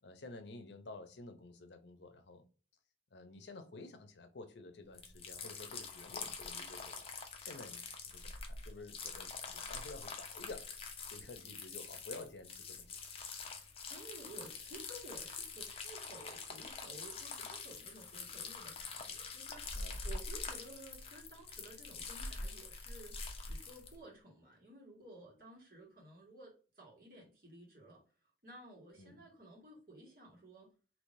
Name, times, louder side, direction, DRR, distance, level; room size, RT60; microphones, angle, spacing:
voice 1, 0.0-2.5 3.1-7.1 7.4-10.7 11.1-12.9 19.7-20.1 29.0-29.3, left 2 dB, 80° left, 0.6 m, -51 dB
sound 1, 4.9-23.9, left 4 dB, 35° left, 0.6 m, -45 dB
voice 2, 13.6-28.0 28.4-30.7, right 1 dB, 55° right, 1.7 m, -54 dB
3.4 x 2.9 x 2.6 m
head